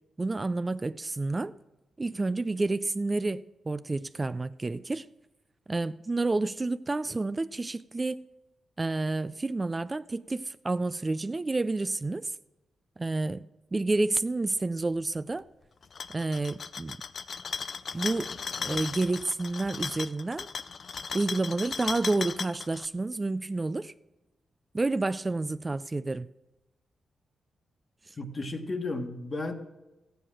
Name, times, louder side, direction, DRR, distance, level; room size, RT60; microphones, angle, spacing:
voice 1, 0.2-1.6 2.0-5.1 5.7-8.3 8.8-12.3 13.0-15.4 16.1-17.0 17.9-20.5 21.1-23.9 24.7-26.3, right 2 dB, 30° right, 0.3 m, -30 dB
sound 1, 15.8-22.9, left 5 dB, 60° left, 0.5 m, -36 dB
voice 2, 28.1-29.5, left 2 dB, 40° left, 1.4 m, -33 dB
13.5 x 9.3 x 6.3 m
cardioid pair, 55°, 0 cm